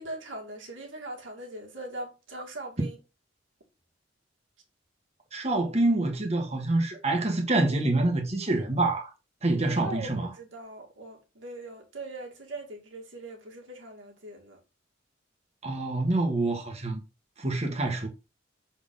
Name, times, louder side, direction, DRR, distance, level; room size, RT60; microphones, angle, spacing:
voice 1, 0.0-3.0 9.7-14.6, right 2 dB, 75° right, 2.2 m, -41 dB
voice 2, 5.3-9.1 9.4-10.3 15.6-17.0 17.4-18.1, right 2 dB, 35° right, 1.5 m, -26 dB
7.1 x 4.3 x 3.8 m
head